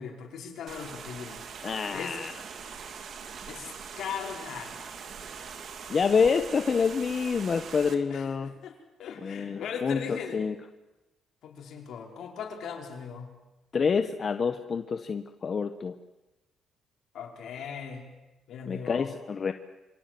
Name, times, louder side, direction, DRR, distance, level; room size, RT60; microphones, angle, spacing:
voice 1, 0.0-1.4 1.9-2.2 3.5-4.7 8.1-10.4 11.4-13.3 17.1-18.1 18.5-19.1, left 7 dB, 75° left, 2 dB, 5.2 m, -39 dB
sound 1, 0.7-8.0, right 6 dB, 60° right, 2.9 m, -42 dB
voice 2, 1.6-2.3 5.9-8.5 9.2-10.5 13.7-15.9 18.7-19.5, left 5 dB, 45° left, 8 dB, 1.2 m, -27 dB
27.5 x 24.0 x 7.9 m, 1.0 s
cardioid pair, 90°, 0 cm